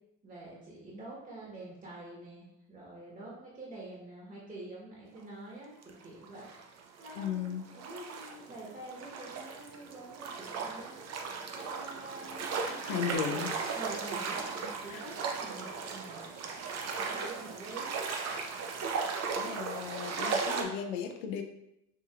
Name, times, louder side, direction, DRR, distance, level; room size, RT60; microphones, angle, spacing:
voice 1, 0.2-10.9 11.5-13.5 13.7-14.5 14.8-16.2 17.0-17.9, right 2 dB, 20° right, -5 dB, 1.2 m, -46 dB
sound 1, 5.2-5.3 5.8-20.6, right 5 dB, 45° right, 0.6 m, -37 dB
voice 2, 7.1-7.7 12.8-13.5 14.6-15.0 19.3-21.4, left 8 dB, 90° left, 5 dB, 0.6 m, -36 dB
4.7 x 2.8 x 2.4 m, 0.83 s
supercardioid pair, 80°, 37 cm